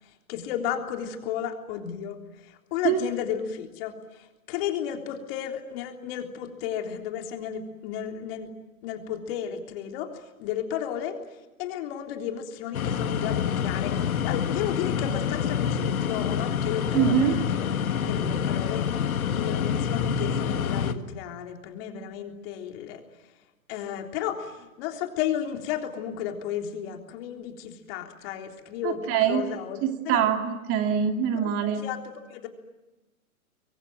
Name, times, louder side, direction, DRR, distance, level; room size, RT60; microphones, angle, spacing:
voice 1, 0.3-2.2 2.7-3.9 4.5-8.5 8.8-10.1 10.4-11.2 11.6-17.8 18.1-18.9 19.3-23.0 23.7-30.3 31.3-32.0 32.3-32.5, left 9 dB, 40° left, 4 dB, 3.6 m, -33 dB
sound 1, 12.7-20.9, left 7 dB, 75° left, 1.9 m, -27 dB
voice 2, 16.9-17.3 28.8-29.4 29.8-31.8, right 9 dB, 30° right, 5 dB, 2.7 m, -24 dB
27.0 x 23.0 x 9.2 m, 1.0 s
hypercardioid pair, 130°, 43 cm